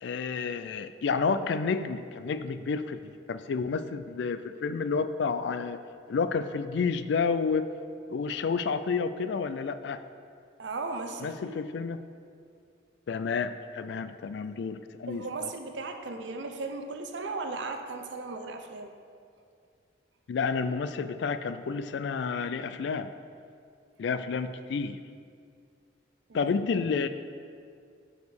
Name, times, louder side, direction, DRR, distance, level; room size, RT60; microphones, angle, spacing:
voice 1, 0.0-5.8 6.1-7.7 8.1-10.0 11.2-12.0 13.1-15.5 20.3-23.1 24.0-25.0 26.3-27.1, left 5 dB, 65° left, 11 dB, 0.3 m, -30 dB
voice 2, 10.6-11.6 15.1-18.9 26.3-26.5, right 3 dB, 70° right, 6 dB, 0.6 m, -36 dB
5.2 x 5.0 x 6.1 m, 2.3 s
head